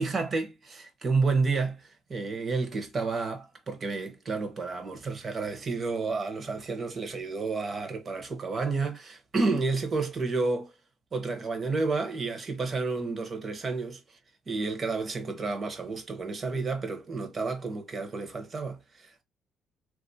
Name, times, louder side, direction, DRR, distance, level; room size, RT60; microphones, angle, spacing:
voice 1, 0.0-10.7 11.1-14.0 14.5-19.2, right 4 dB, 30° right, 0.8 m, -30 dB
3.6 x 2.4 x 2.6 m
cardioid pair, 145°, 0 cm